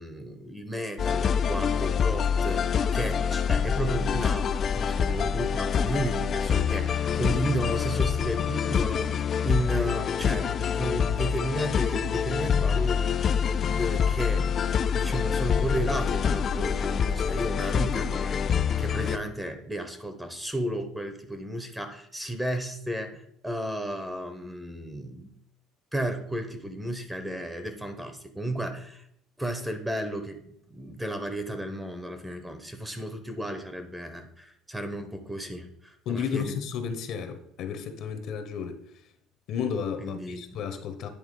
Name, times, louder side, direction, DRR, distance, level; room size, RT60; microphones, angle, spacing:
voice 1, 0.0-13.2 13.7-14.6 14.9-25.3 25.9-29.1 29.4-36.6 40.0-40.6, right 1 dB, 5° right, 0.8 m, -33 dB
sound 1, 1.0-19.2, left 7 dB, 35° left, 0.3 m, -26 dB
voice 2, 36.1-38.8 39.5-41.1, left 7 dB, 55° left, 0.9 m, -32 dB
9.5 x 3.5 x 5.2 m
cardioid pair, 135°, 0 cm